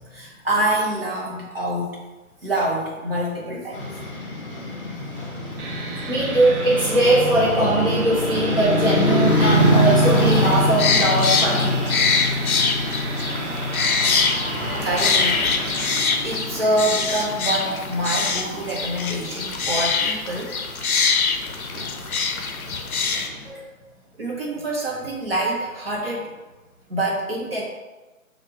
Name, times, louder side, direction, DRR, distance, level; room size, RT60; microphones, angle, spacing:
voice 1, 0.1-2.0 2.4-3.8 14.8-15.5 15.8-20.6 24.2-26.3 26.9-27.6, right 1 dB, 40° right, -4 dB, 0.9 m, -26 dB
sound 1, 3.7-23.5, equal, 40° left, 0.8 m, -25 dB
sound 2, 5.6-16.0, right 3 dB, 85° right, 0.9 m, -34 dB
voice 2, 6.1-11.8 23.4-23.6, right 1 dB, 10° right, -26 dB, 1.5 m, -20 dB
sound 3, 10.1-23.3, left 5 dB, 75° left, 0.6 m, -24 dB
3.3 x 2.4 x 4.4 m, 1.1 s
figure-of-eight pair, 170°, 43 cm